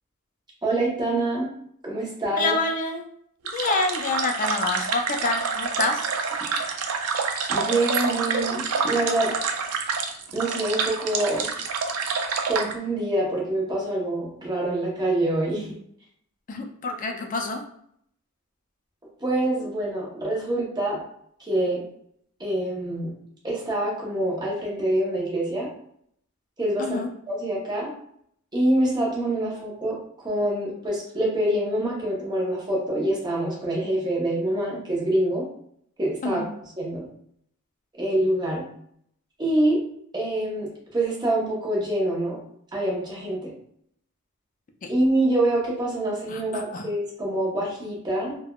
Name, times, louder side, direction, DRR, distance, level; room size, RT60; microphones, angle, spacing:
voice 1, 0.6-1.5 1.8-2.5 7.5-9.3 10.3-11.5 12.5-15.7 19.2-21.0 21.5-21.8 22.4-23.1 23.4-25.7 26.6-27.9 28.5-35.4 36.0-36.5 36.8-37.0 38.0-38.6 39.4-39.8 40.1-42.4 42.7-43.5 44.9-48.4, right 1 dB, 20° right, -4 dB, 0.8 m, -25 dB
voice 2, 2.4-3.1 3.5-6.0 16.5-17.6 26.8-27.1 36.2-36.5 44.8-44.9 46.3-46.9, left 3 dB, 35° left, 4 dB, 0.4 m, -27 dB
sound 1, 3.4-12.7, right 5 dB, 80° right, 0.4 m, -27 dB
3.4 x 2.2 x 2.3 m, 0.68 s
head